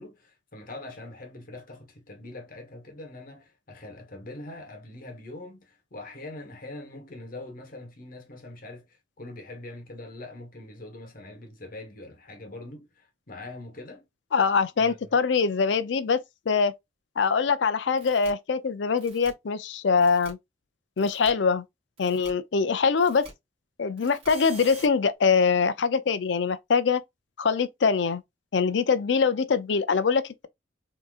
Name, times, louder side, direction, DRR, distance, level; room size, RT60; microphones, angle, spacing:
voice 1, 0.0-14.0 14.8-15.2, left 2 dB, 50° left, 1.1 m, -43 dB
voice 2, 14.3-16.2 16.5-16.7 17.2-20.4 21.0-21.6 22.0-23.3 23.8-27.0 27.4-28.2 28.5-30.5, left 5 dB, 70° left, 0.5 m, -23 dB
sound 1, 18.0-18.3 19.0-19.3 20.0-20.3 21.0-21.3 22.0-22.3 23.0-23.3 24.0-24.9, right 3 dB, 35° right, 1.4 m, -45 dB
3.6 x 2.8 x 2.4 m
head